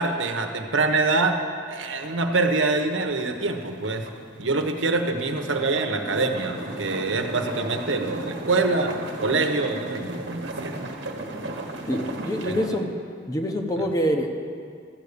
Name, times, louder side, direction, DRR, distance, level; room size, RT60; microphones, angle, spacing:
voice 1, 0.0-1.4 1.7-4.1 4.4-8.9 9.2-10.9 12.4-12.6, right 3 dB, 85° right, 4 dB, 1.1 m, -25 dB
sound 1, 2.0-12.7, right 2 dB, 65° right, 1.3 m, -36 dB
voice 2, 11.9-12.9 13.3-14.3, equal, 20° left, 4 dB, 0.9 m, -25 dB
13.5 x 8.3 x 6.8 m, 2.2 s
head